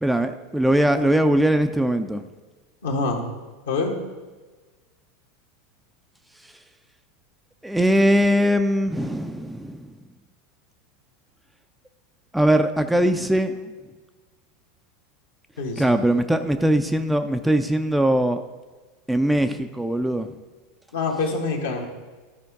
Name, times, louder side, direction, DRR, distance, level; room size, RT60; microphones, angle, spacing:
voice 1, 0.0-2.2 7.6-9.9 12.3-13.7 15.8-18.4 19.1-20.3, right 1 dB, 5° right, 7 dB, 0.5 m, -21 dB
voice 2, 2.8-3.2 3.7-3.9 15.6-15.8 20.9-21.9, left 3 dB, 65° left, 0 dB, 1.6 m, -25 dB
13.0 x 5.1 x 3.7 m, 1.3 s
figure-of-eight pair, 80°, 0 cm